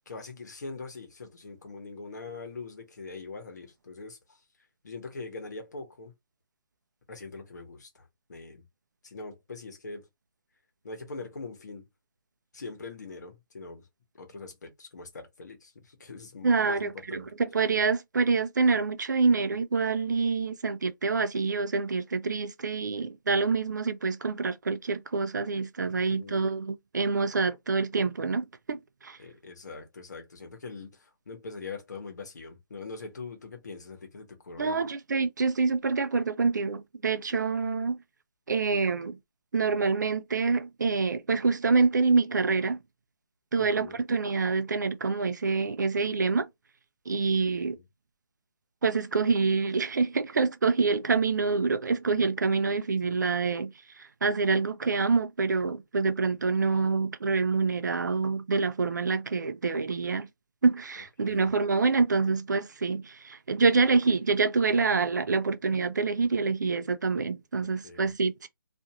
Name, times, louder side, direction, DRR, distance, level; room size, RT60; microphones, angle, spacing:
voice 1, 0.0-4.4 4.8-6.1 7.1-8.6 9.0-10.1 10.8-11.9 12.5-13.9 14.2-17.3 25.9-26.5 29.2-34.8 43.6-44.0 47.7-47.8 61.2-61.5 67.6-68.1, left 3 dB, 50° left, 1.0 m, -42 dB
voice 2, 16.4-29.2 34.6-38.0 38.5-39.2 39.5-42.8 43.5-46.5 47.1-47.8 48.8-53.7 54.0-60.3 60.6-68.5, right 4 dB, 55° right, 0.4 m, -26 dB
2.5 x 2.4 x 2.8 m
hypercardioid pair, 175°, 12 cm